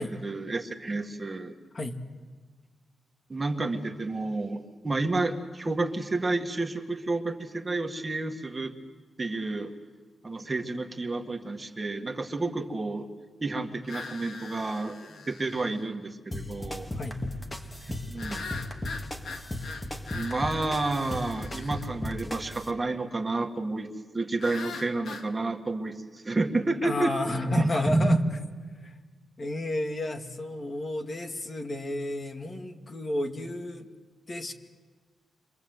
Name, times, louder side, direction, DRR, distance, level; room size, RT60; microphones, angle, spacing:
voice 1, 0.0-1.6 3.3-8.7 9.2-9.7 10.2-13.1 13.4-16.9 17.8-18.5 20.1-23.9 24.1-27.1 27.5-28.2, right 2 dB, 25° right, 4 dB, 2.0 m, -30 dB
sound 1, 13.9-15.8 18.2-21.8 24.4-25.3, left 4 dB, 75° left, 2.2 m, -41 dB
sound 2, 16.3-22.7, left 1 dB, 20° left, 2.1 m, -36 dB
voice 2, 26.8-28.2 28.8-28.9 29.4-33.9 34.3-34.5, left 1 dB, 40° left, 4 dB, 2.2 m, -32 dB
30.0 x 24.5 x 8.1 m, 1.4 s
wide cardioid pair, 120°, 0 cm